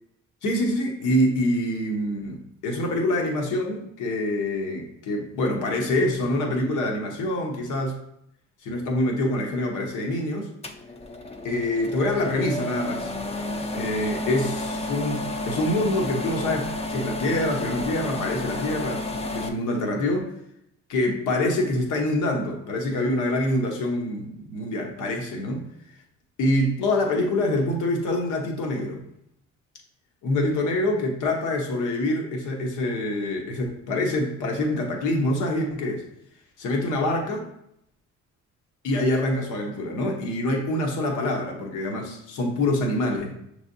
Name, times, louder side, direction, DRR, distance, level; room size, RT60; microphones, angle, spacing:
voice 1, 0.4-8.0 8.6-10.5 11.4-13.1 13.7-20.3 20.9-25.6 26.4-29.0 30.2-36.0 36.6-37.4 38.8-43.3, left 1 dB, 80° left, 1 dB, 1.0 m, -25 dB
sound 1, 10.6-19.5, left 1 dB, 20° left, 0.5 m, -31 dB
6.2 x 3.2 x 2.7 m, 0.76 s
cardioid pair, 90°, 30 cm